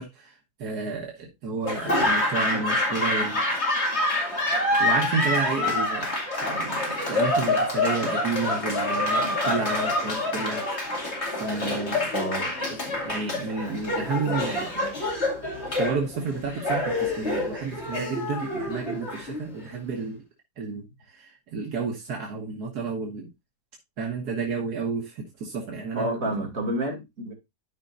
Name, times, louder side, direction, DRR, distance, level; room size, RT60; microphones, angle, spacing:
voice 1, 0.0-3.5 4.8-6.1 6.4-10.6 11.3-12.1 13.0-14.7 15.8-20.2 20.6-23.3 24.0-26.2, right 4 dB, 80° right, 1.9 m, -31 dB
Laughter / Applause, 1.6-19.7, left 1 dB, 45° left, 2.7 m, -27 dB
voice 2, 12.1-12.5 25.9-27.3, right 1 dB, 60° right, 2.9 m, -29 dB
13.0 x 5.1 x 2.6 m
omnidirectional pair, 1.7 m